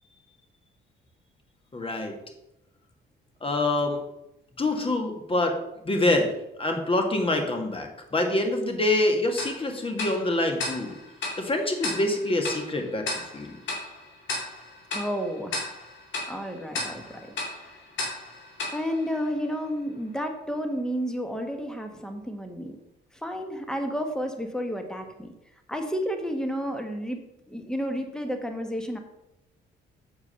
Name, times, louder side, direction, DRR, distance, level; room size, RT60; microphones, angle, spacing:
voice 1, 1.7-2.1 3.4-4.0 4.6-5.6 5.8-6.3 6.6-11.0 11.4-13.1 13.3-13.6, left 2 dB, 25° left, 4 dB, 1.8 m, -25 dB
Tick-tock, 9.4-19.8, left 2 dB, 70° left, 2.9 m, -36 dB
voice 2, 14.9-15.7 16.3-17.8 18.7-22.8 23.1-25.3 25.7-29.0, equal, 5° left, 5 dB, 1.2 m, -31 dB
7.1 x 4.8 x 6.7 m, 0.87 s
cardioid pair, 90°, 20 cm